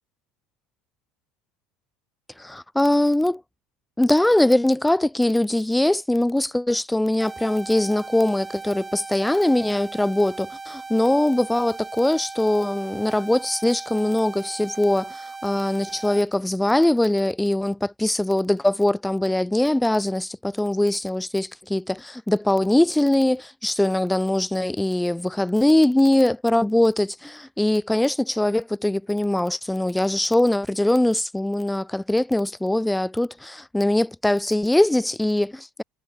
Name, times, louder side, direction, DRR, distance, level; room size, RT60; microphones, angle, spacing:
voice 1, 2.4-3.4 4.0-35.8, left 1 dB, 5° left, 1.6 m, -22 dB
sound 1, 7.2-16.2, right 4 dB, 20° right, 3.6 m, -38 dB
hypercardioid pair, 85°, 0 cm